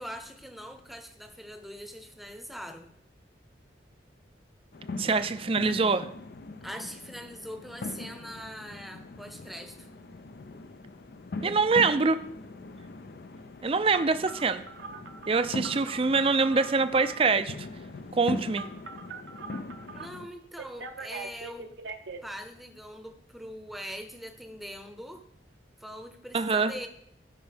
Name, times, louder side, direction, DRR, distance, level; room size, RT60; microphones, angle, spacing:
voice 1, 0.0-2.9 6.6-9.9 19.9-21.7 22.2-25.2 25.8-26.9, equal, ahead, 7 dB, 0.8 m, -42 dB
sound 1, 4.7-20.3, left 3 dB, 55° left, 0.5 m, -41 dB
voice 2, 5.0-6.1 11.4-12.2 13.6-14.6 15.3-17.5 18.1-18.7 26.3-26.7, right 4 dB, 30° right, 11 dB, 0.4 m, -24 dB
Telephone, 13.9-17.3 18.5-20.1 20.6-22.2, right 4 dB, 80° right, 0.9 m, -42 dB
15.5 x 5.4 x 3.4 m, 0.70 s
head